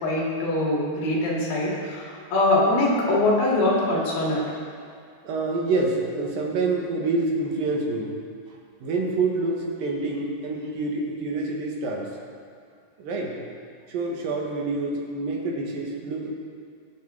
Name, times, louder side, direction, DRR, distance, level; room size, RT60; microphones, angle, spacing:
voice 1, 0.0-4.4, left 2 dB, 80° left, -4 dB, 4.1 m, -23 dB
voice 2, 5.2-8.1 8.8-12.1 13.0-13.3 13.9-16.3, right 3 dB, 80° right, -1 dB, 3.3 m, -27 dB
21.5 x 7.3 x 3.7 m, 2.3 s
omnidirectional pair, 4.1 m